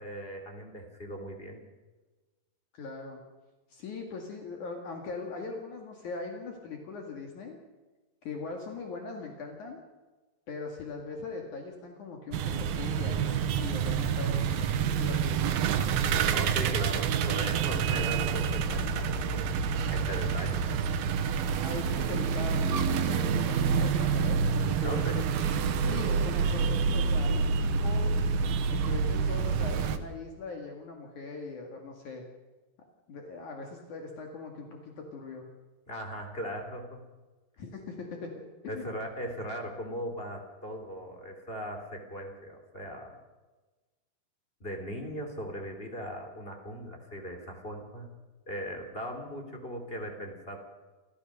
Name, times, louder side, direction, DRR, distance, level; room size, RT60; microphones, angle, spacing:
voice 1, 0.0-1.6 16.3-20.6 24.8-25.2 35.9-37.1 38.7-43.1 44.6-48.1 48.5-50.6, equal, 15° left, 2 dB, 3.3 m, -39 dB
voice 2, 2.7-3.2 3.7-7.6 8.2-9.8 10.5-15.5 21.6-24.4 24.8-25.3 25.8-28.1 28.7-32.2 33.1-35.5 37.6-38.3 38.6-38.9, left 4 dB, 60° left, 2 dB, 3.4 m, -40 dB
sound 1, 12.3-30.0, right 6 dB, 85° right, 3.1 m, -28 dB
28.0 x 14.5 x 6.7 m, 1.2 s
omnidirectional pair, 4.2 m